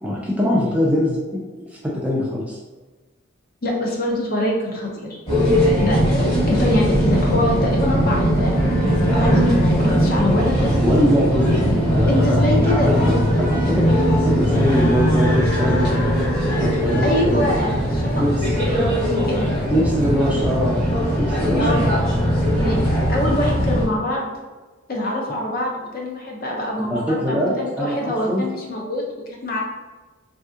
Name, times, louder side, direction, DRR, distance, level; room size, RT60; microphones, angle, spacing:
voice 1, 0.0-2.6 10.8-11.5 11.9-12.4 12.9-13.1 13.4-15.9 16.6-17.4 18.2-18.5 19.7-20.9 21.2-21.9 26.9-28.4, equal, 5° right, -4 dB, 0.4 m, -22 dB
voice 2, 3.6-5.2 5.8-10.8 12.1-12.9 17.0-18.1 18.6-19.5 21.6-21.9 22.6-24.3 24.9-29.1 29.4-29.6, left 1 dB, 45° left, -1 dB, 0.6 m, -24 dB
sound 1, 5.3-23.9, equal, 30° left, 1.3 m, -19 dB
sound 2, 8.5-20.5, left 1 dB, 60° left, 1.2 m, -33 dB
3.3 x 2.7 x 2.4 m, 1.2 s
head